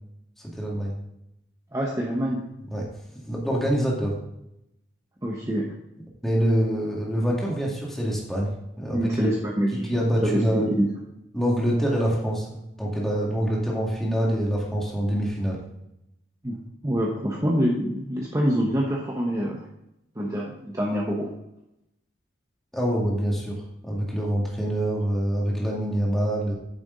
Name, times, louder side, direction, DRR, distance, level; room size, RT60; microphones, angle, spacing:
voice 1, 0.4-0.9 2.7-2.9 3.2-4.1 6.2-8.5 8.8-9.3 9.7-10.7 11.3-15.6 22.7-26.5, equal, ahead, -4 dB, 2.2 m, -25 dB
voice 2, 1.7-2.4 5.2-5.7 8.9-10.9 16.4-16.6 16.8-19.6 20.2-21.3, equal, 20° right, -2 dB, 1.0 m, -26 dB
9.2 x 6.9 x 3.9 m, 0.84 s
head